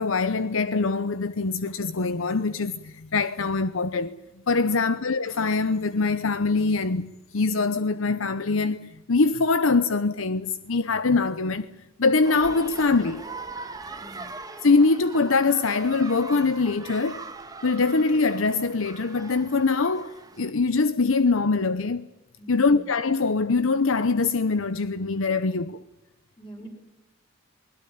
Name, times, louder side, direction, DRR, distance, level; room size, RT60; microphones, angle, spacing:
voice 1, 0.0-4.2 4.5-11.7 12.0-13.2 14.6-17.3 17.6-22.1 22.5-25.8, left 4 dB, 75° left, 0.8 m, -23 dB
sound 1, 12.2-20.5, right 3 dB, 20° right, 1.8 m, -41 dB
voice 2, 22.4-22.8 26.4-26.7, right 1 dB, 20° left, 6.4 m, -45 dB
21.0 x 20.5 x 9.0 m
head